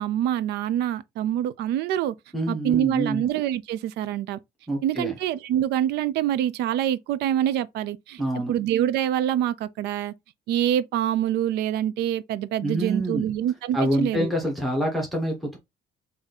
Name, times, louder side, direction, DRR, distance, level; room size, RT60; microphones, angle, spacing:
voice 1, 0.0-2.2 2.5-4.4 4.8-8.2 8.5-10.1 10.5-14.3, right 11 dB, 80° right, 0.5 m, -25 dB
voice 2, 2.3-3.2 4.7-5.1 8.2-8.5 12.6-13.3 13.7-15.6, right 1 dB, ahead, 1.3 m, -26 dB
3.6 x 2.7 x 4.0 m
cardioid pair, 110°, 17 cm